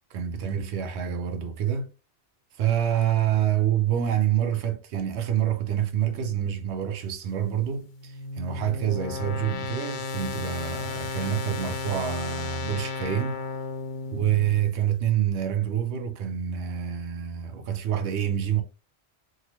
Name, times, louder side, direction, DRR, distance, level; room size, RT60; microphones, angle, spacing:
voice 1, 0.1-1.9 2.6-13.4 14.1-18.6, right 10 dB, 75° right, 0.9 m, -27 dB
sound 1, 7.6-14.7, left 4 dB, 55° left, 0.6 m, -34 dB
2.8 x 2.3 x 2.8 m
omnidirectional pair, 1.2 m